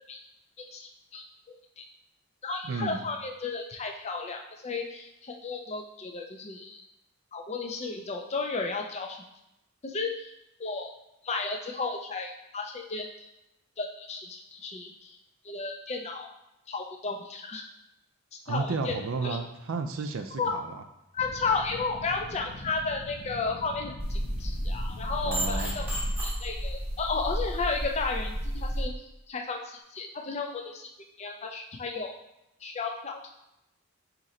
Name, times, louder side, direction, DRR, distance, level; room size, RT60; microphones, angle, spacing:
voice 1, 0.7-1.9 2.4-6.8 7.3-9.2 9.8-10.3 10.6-10.9 11.2-13.1 13.8-15.2 15.4-16.3 16.7-17.6 18.5-19.0 19.2-19.4 20.4-20.5 21.1-25.9 26.2-28.9 29.3-30.9 31.2-32.2 32.6-33.2, left 4 dB, 30° left, 2 dB, 0.4 m, -33 dB
voice 2, 2.6-3.0 18.5-20.8 25.2-25.8, right 4 dB, 65° right, 6 dB, 0.4 m, -32 dB
sound 1, 21.2-26.2, left 2 dB, 85° left, 0.6 m, -43 dB
sound 2, 24.0-28.8, equal, 10° right, 0.8 m, -32 dB
3.8 x 2.9 x 4.2 m, 0.89 s
head